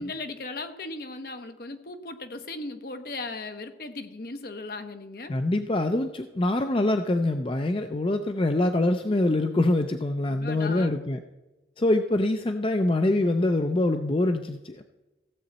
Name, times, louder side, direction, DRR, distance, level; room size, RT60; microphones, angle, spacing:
voice 1, 0.0-5.4 10.3-10.9, left 3 dB, 55° left, 7 dB, 1.0 m, -37 dB
voice 2, 5.3-11.2 11.8-14.8, left 2 dB, 30° left, 7 dB, 0.5 m, -24 dB
15.5 x 7.7 x 4.1 m, 1.1 s
head